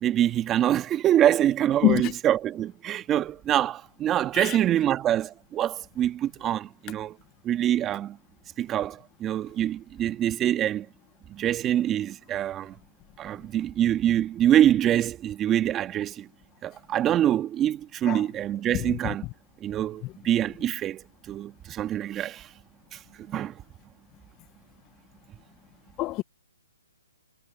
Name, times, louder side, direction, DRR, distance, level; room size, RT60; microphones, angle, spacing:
voice 1, 0.0-7.2 7.4-8.2 8.6-10.8 11.3-12.8 13.2-16.3 16.6-19.2 19.6-22.5 22.9-23.0 23.3-23.5, right 11 dB, 15° right, 1.6 m, -25 dB
voice 2, 1.8-2.1 4.4-4.6 18.1-18.2 18.7-18.8 26.0-26.2, left 18 dB, 25° left, 0.8 m, -24 dB
hypercardioid pair, 145°, 0 cm